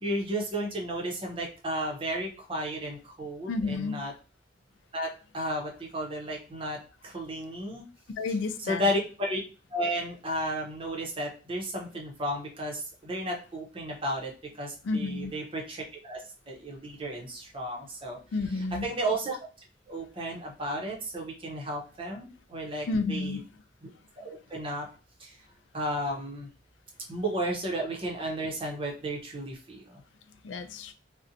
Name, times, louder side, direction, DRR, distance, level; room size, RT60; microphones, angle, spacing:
voice 1, 0.0-4.1 4.9-5.1 5.3-7.8 8.6-9.4 9.7-18.2 18.5-19.4 19.9-23.4 23.8-23.9 24.2-24.9 25.2-25.4 25.7-26.5 27.1-30.0, right 1 dB, 30° right, 0.7 m, -33 dB
voice 2, 3.5-4.0 8.2-8.8 14.8-15.3 18.3-18.9 22.9-23.4 30.4-30.9, left 3 dB, 85° left, 0.4 m, -30 dB
2.5 x 2.1 x 2.7 m
head